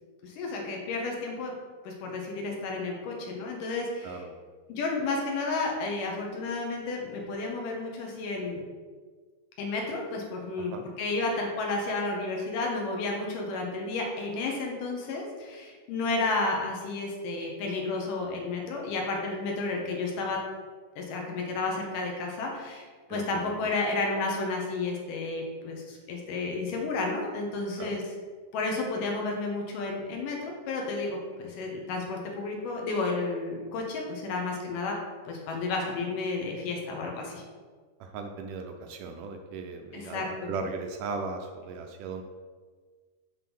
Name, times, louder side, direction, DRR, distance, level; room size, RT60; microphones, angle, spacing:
voice 1, 0.2-1.5 1.8-4.2 4.7-8.6 9.6-20.4 21.0-28.0 28.5-34.9 35.3-37.4 39.9-40.5, left 3 dB, 75° left, 0 dB, 2.6 m, -32 dB
voice 2, 23.1-23.7 27.8-28.0 38.0-42.2, right 4 dB, 80° right, 4 dB, 2.0 m, -37 dB
7.5 x 3.7 x 6.1 m, 1.5 s
omnidirectional pair, 4.0 m